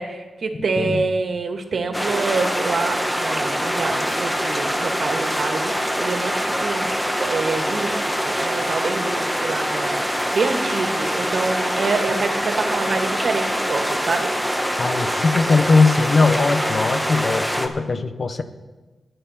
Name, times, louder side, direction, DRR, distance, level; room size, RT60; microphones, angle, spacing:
voice 1, 0.0-6.9 7.2-14.3, right 4 dB, 65° right, 5 dB, 1.7 m, -26 dB
sound 1, 1.9-17.7, equal, 5° left, 1.3 m, -24 dB
voice 2, 14.8-18.4, left 3 dB, 45° left, 9 dB, 0.9 m, -19 dB
22.0 x 9.3 x 4.3 m, 1.2 s
wide cardioid pair, 105°, 0 cm